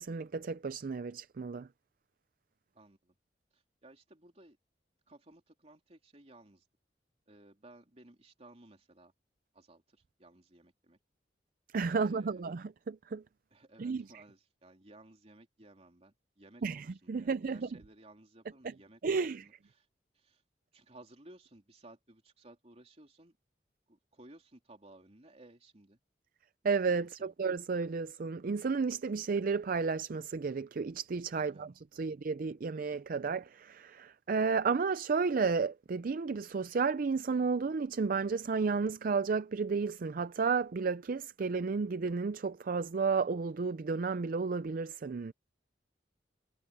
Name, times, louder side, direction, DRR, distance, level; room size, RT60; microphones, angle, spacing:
voice 1, 0.0-1.7 11.7-13.2 13.8-14.0 16.6-17.7 19.0-19.5 26.6-45.3, right 5 dB, 50° right, 0.4 m, -32 dB
voice 2, 2.7-3.1 3.5-4.6 5.1-6.6 7.3-9.1 9.5-11.0 11.9-12.5 13.5-19.9 20.1-20.4 20.7-23.4 23.9-26.0 27.0-27.3 31.3-31.6 31.9-32.1, right 2 dB, 35° right, 3.4 m, -58 dB
head